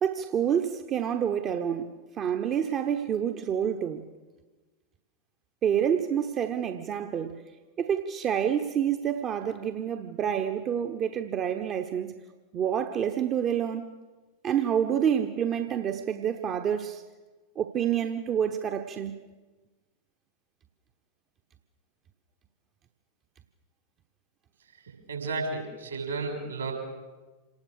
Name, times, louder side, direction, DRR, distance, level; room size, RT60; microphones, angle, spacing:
voice 1, 0.0-4.0 5.6-7.4 7.8-12.2 12.5-13.8 14.4-17.0 17.6-19.2, right 8 dB, 30° right, 1.1 m, -28 dB
voice 2, 24.8-26.7, right 3 dB, 70° right, 6.3 m, -33 dB
27.5 x 19.0 x 6.6 m
figure-of-eight pair, 90°, 0 cm